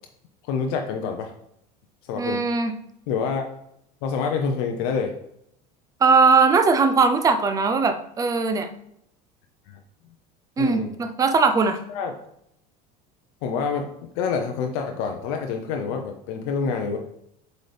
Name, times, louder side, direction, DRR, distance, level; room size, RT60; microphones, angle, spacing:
voice 1, 0.4-1.3 2.0-2.5 3.1-3.5 4.0-5.2 10.6-10.9 11.9-12.1 13.4-17.0, left 5 dB, 65° left, 4 dB, 0.7 m, -27 dB
voice 2, 2.2-2.7 6.0-8.7 10.6-11.8, right 4 dB, 15° right, 8 dB, 0.5 m, -19 dB
8.1 x 4.0 x 3.4 m, 0.77 s
cardioid pair, 150°, 20 cm